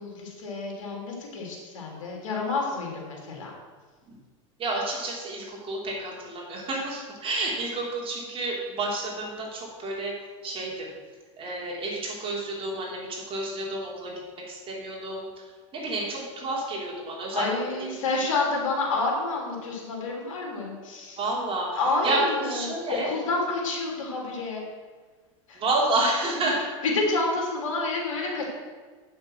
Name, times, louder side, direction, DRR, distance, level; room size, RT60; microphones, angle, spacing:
voice 1, 0.0-3.5 17.3-21.2 21.8-24.6 25.5-25.6 26.8-28.5, left 3 dB, 80° left, -1 dB, 3.0 m, -29 dB
voice 2, 4.6-10.2 10.4-10.9 11.4-15.3 15.7-17.5 21.1-23.1 25.5-26.7, right 2 dB, 35° right, -2 dB, 3.3 m, -30 dB
8.6 x 6.4 x 6.2 m, 1.5 s
hypercardioid pair, 105°, 17 cm